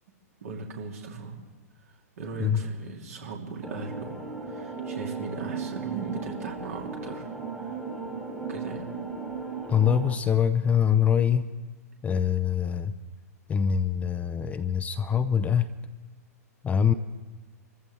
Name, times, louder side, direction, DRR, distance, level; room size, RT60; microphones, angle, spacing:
voice 1, 0.4-1.4 2.2-7.3 7.6-7.7 8.5-8.9, right 4 dB, 60° right, 0 dB, 2.6 m, -38 dB
sound 1, 3.6-10.2, right 4 dB, 5° right, 1.5 m, -36 dB
voice 2, 9.7-11.5 12.0-12.9 13.5-15.7 16.6-16.9, left 8 dB, 15° left, 11 dB, 0.5 m, -24 dB
26.5 x 14.5 x 3.3 m, 1.2 s
figure-of-eight pair, 105°, 9 cm